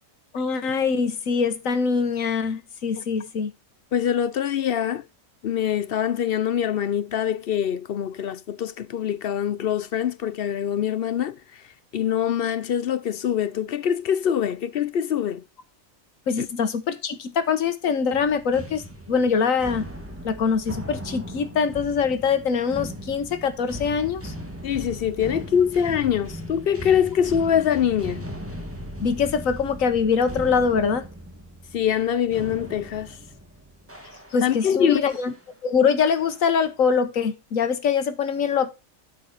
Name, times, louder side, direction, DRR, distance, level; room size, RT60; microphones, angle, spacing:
voice 1, 0.3-3.5 16.3-19.8 20.2-24.3 29.0-31.1 34.3-35.3 35.6-38.7, left 6 dB, 80° left, 1.4 m, -23 dB
voice 2, 3.9-5.0 5.4-11.4 11.9-15.4 16.4-16.5 24.6-28.2 31.7-33.2 34.4-35.0, left 9 dB, 60° left, 0.7 m, -24 dB
sound 1, 18.1-34.7 35.1-35.4 36.0-36.5, equal, 10° right, 1.4 m, -38 dB
12.0 x 4.7 x 4.0 m
omnidirectional pair, 1.4 m